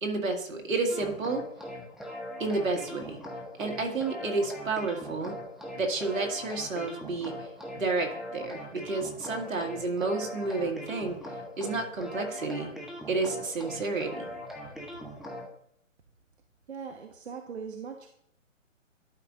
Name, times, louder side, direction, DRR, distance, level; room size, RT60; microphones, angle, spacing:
voice 1, 0.0-1.5 2.4-3.2 3.6-5.3 5.8-7.3 7.7-11.2 11.6-12.7 13.1-14.3, right 3 dB, 80° right, 2 dB, 2.1 m, -30 dB
sound 1, 0.9-15.5, left 1 dB, ahead, 0.3 m, -41 dB
voice 2, 16.7-18.1, right 6 dB, 55° right, 4 dB, 0.9 m, -40 dB
11.5 x 5.2 x 2.6 m, 0.68 s
hypercardioid pair, 175°, 40 cm